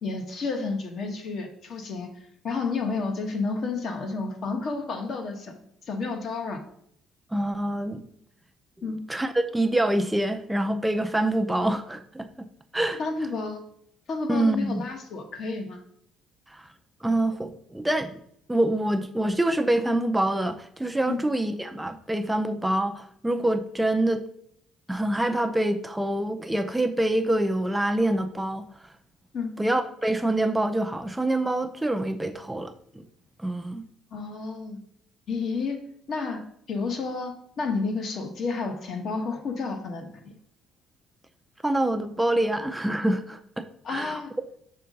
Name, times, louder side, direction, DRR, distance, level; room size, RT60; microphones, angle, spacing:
voice 1, 0.0-2.1 2.4-5.5 5.9-6.6 8.8-9.0 13.0-13.6 14.1-15.8 21.1-21.2 29.3-29.5 34.1-34.8 35.3-35.8 36.1-36.4 36.7-40.3 43.8-44.3, left 4 dB, 45° left, 5 dB, 1.0 m, -31 dB
voice 2, 7.3-8.0 9.1-12.3 12.7-13.0 14.3-14.8 16.5-16.6 17.0-18.1 18.5-24.2 24.9-28.7 29.6-33.1 33.4-33.8 41.6-43.6 43.9-44.2, right 1 dB, 5° right, 7 dB, 0.5 m, -26 dB
5.7 x 3.7 x 5.3 m, 0.69 s
cardioid pair, 145°, 0 cm